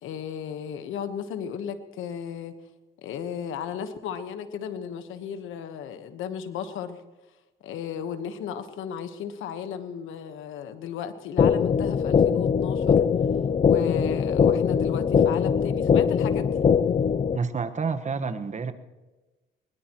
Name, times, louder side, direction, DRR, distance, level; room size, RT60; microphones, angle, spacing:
voice 1, 0.0-2.5 3.0-7.0 7.6-13.1 13.6-16.7, left 8 dB, 85° left, 9 dB, 1.3 m, -35 dB
sound 1, 11.4-17.4, left 7 dB, 35° left, 0.5 m, -21 dB
voice 2, 17.3-18.7, right 5 dB, 35° right, 10 dB, 1.4 m, -29 dB
23.0 x 20.5 x 3.1 m, 1.2 s
cardioid pair, 90°, 20 cm